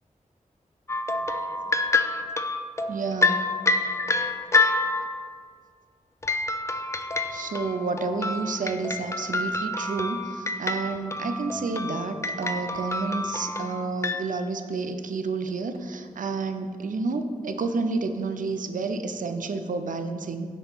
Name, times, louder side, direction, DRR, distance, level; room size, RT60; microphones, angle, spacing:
sound 1, 0.9-5.3 6.2-14.2, left 3 dB, 20° left, 0.3 m, -27 dB
voice 1, 2.9-3.4 7.3-20.5, right 3 dB, 70° right, 8 dB, 0.5 m, -30 dB
6.7 x 3.0 x 5.8 m, 2.1 s
wide cardioid pair, 70°, 14 cm